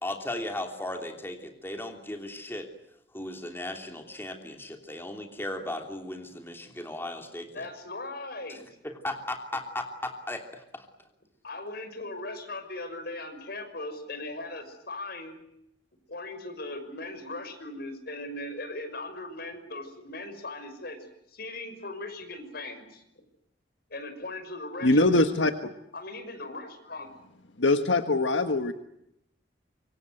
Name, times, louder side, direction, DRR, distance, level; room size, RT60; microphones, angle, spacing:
voice 1, 0.0-2.7 3.1-7.6 8.8-10.9, left 1 dB, 10° left, 4 dB, 3.0 m, -36 dB
voice 2, 7.5-8.6 11.4-15.4 16.1-23.0 23.9-25.2 25.9-27.1, left 2 dB, 55° left, 8 dB, 5.9 m, -39 dB
voice 3, 24.8-25.7 27.6-28.7, left 2 dB, 80° left, 8 dB, 1.6 m, -23 dB
26.0 x 24.0 x 7.9 m, 0.79 s
head